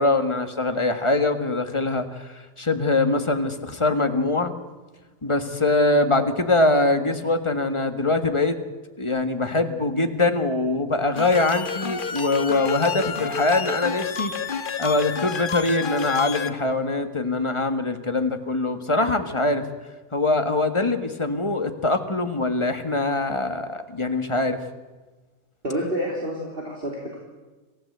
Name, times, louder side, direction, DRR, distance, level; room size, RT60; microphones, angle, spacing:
voice 1, 0.0-4.5 5.2-8.6 9.0-19.6 20.1-24.6, left 2 dB, 20° left, 8 dB, 1.6 m, -23 dB
sound 1, 11.2-16.5, left 6 dB, 40° left, 1.3 m, -29 dB
voice 2, 25.6-27.2, equal, 40° right, -2 dB, 3.3 m, -28 dB
26.5 x 15.5 x 8.0 m, 1.3 s
omnidirectional pair, 1.5 m